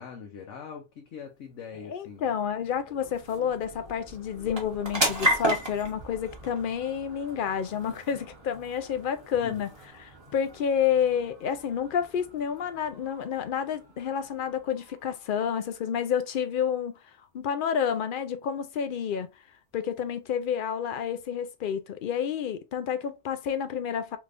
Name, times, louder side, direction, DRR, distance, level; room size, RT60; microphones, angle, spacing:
voice 1, 0.0-2.3 9.4-9.6, left 6 dB, 75° left, 1.0 m, -42 dB
sound 1, 1.6-16.4, right 1 dB, 25° right, 1.1 m, -36 dB
voice 2, 1.9-9.7 10.0-17.0 17.3-19.3 19.7-24.2, left 8 dB, 60° left, 0.6 m, -29 dB
3.3 x 3.3 x 2.5 m
omnidirectional pair, 1.3 m